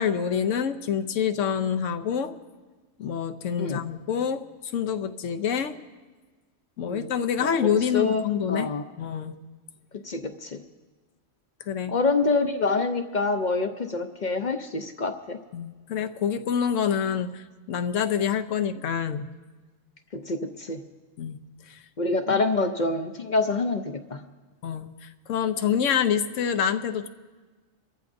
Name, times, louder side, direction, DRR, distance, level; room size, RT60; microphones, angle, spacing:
voice 1, 0.0-2.3 3.0-4.4 4.7-5.8 6.8-8.7 9.0-9.3 11.7-11.9 15.5-19.3 21.2-21.4 21.7-21.8 22.3-22.4 24.6-27.1, left 7 dB, 80° left, 8 dB, 1.1 m, -27 dB
voice 2, 7.4-8.8 9.9-10.6 11.9-15.4 20.1-20.8 22.0-24.2, left 3 dB, 45° left, 7 dB, 0.7 m, -26 dB
29.0 x 14.5 x 2.6 m, 1.3 s
omnidirectional pair, 1.3 m